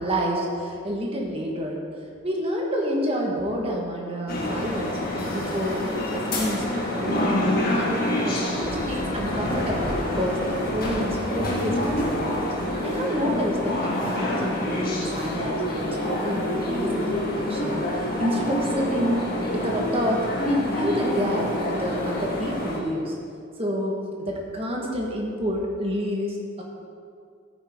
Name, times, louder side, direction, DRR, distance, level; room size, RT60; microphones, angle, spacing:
voice 1, 0.0-1.8 2.2-5.8 6.1-12.4 12.8-19.2 19.5-23.1 23.6-26.6, equal, 25° right, -1 dB, 1.5 m, -28 dB
sound 1, 4.3-22.8, left 1 dB, 45° left, 1.7 m, -27 dB
13.0 x 9.3 x 3.7 m, 2.3 s
head